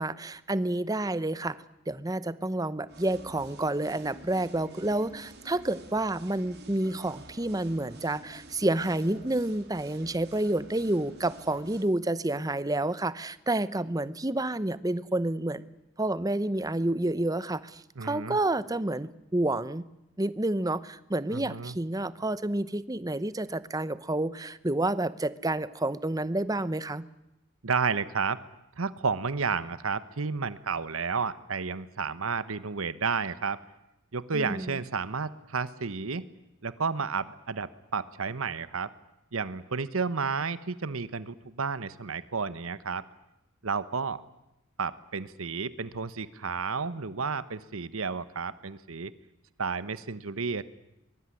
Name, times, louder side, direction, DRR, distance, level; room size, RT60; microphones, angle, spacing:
voice 1, 0.0-1.6 1.9-15.6 16.0-19.8 20.2-27.0 34.3-34.8, right 1 dB, 15° right, 16 dB, 0.8 m, -29 dB
sound 1, 2.9-11.8, right 2 dB, 50° right, 4.0 m, -50 dB
voice 2, 18.0-18.4 21.3-21.7 27.6-28.4 28.8-33.6 34.1-36.3 36.6-38.9 39.3-43.0 43.6-44.2 44.8-49.1 49.6-50.6, right 5 dB, 80° right, 15 dB, 1.1 m, -31 dB
23.0 x 22.5 x 9.8 m, 0.91 s
head